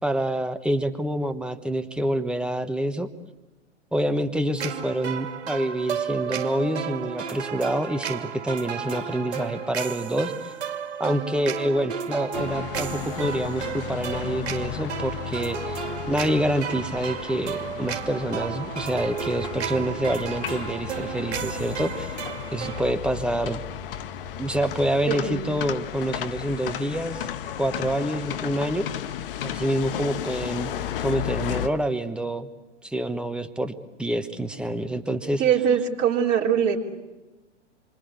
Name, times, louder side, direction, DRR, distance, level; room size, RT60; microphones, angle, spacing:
voice 1, 0.0-3.1 3.9-10.5 11.0-15.8 16.1-22.2 22.5-23.6 24.4-27.3 27.6-28.9 29.4-30.7 31.0-32.5 32.8-35.4, right 1 dB, 5° right, 8 dB, 1.2 m, -27 dB
sound 1, 4.6-22.9, right 7 dB, 60° right, 2.7 m, -33 dB
sound 2, 12.3-31.7, left 10 dB, 45° left, 1.4 m, -34 dB
voice 2, 25.1-25.4 35.4-36.8, right 8 dB, 30° right, -2 dB, 3.8 m, -22 dB
28.0 x 24.5 x 8.3 m, 1.1 s
figure-of-eight pair, 120°, 37 cm